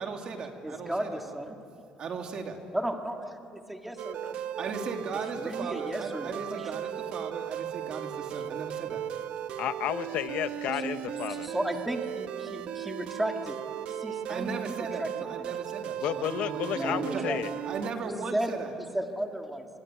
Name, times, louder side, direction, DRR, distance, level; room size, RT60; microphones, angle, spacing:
voice 1, 0.0-1.2 2.0-2.6 4.6-9.1 14.3-17.2 17.7-18.7, right 4 dB, 45° right, 3 dB, 2.8 m, -37 dB
voice 2, 0.6-1.6 2.7-4.7 5.4-6.8 10.6-11.0 11.3-13.6 13.9-15.1 15.4-15.6 16.8-17.4 18.0-18.5 18.9-19.7, right 1 dB, 5° right, 3 dB, 2.0 m, -34 dB
sound 1, 4.0-17.9, right 10 dB, 65° right, 1.1 m, -36 dB
voice 3, 9.6-11.5 16.0-17.5, left 11 dB, 70° left, 12 dB, 0.8 m, -32 dB
26.0 x 23.5 x 9.4 m, 2.7 s
cardioid pair, 160°, 2 cm